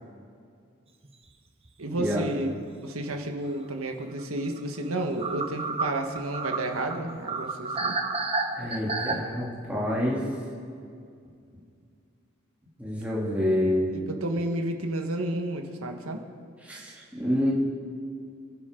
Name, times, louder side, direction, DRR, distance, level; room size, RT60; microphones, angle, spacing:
sound 1, 1.0-1.3 1.7-1.8 4.2-4.3 4.6-4.7 4.9-9.2, right 3 dB, 25° right, 1.0 m, -30 dB
voice 1, 1.8-2.5 2.8-8.0 13.9-16.2, right 1 dB, 85° right, 3 dB, 1.7 m, -31 dB
voice 2, 8.5-10.2 12.8-13.9 16.7-17.5, left 1 dB, 5° right, -7 dB, 3.1 m, -27 dB
27.0 x 11.5 x 3.9 m, 2.3 s
head